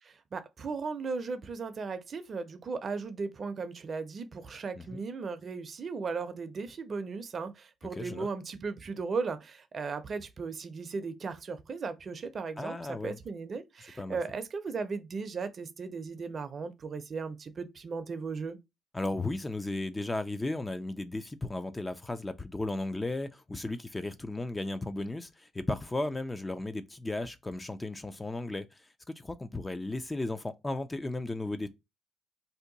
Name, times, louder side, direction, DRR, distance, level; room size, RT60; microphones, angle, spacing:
voice 1, 0.0-18.6, right 4 dB, 45° right, 0.5 m, -36 dB
voice 2, 8.0-8.3 12.6-13.2 14.0-14.2 18.9-28.7 29.2-31.7, left 2 dB, 20° left, 0.3 m, -35 dB
2.7 x 2.2 x 3.8 m
cardioid pair, 90°, 0 cm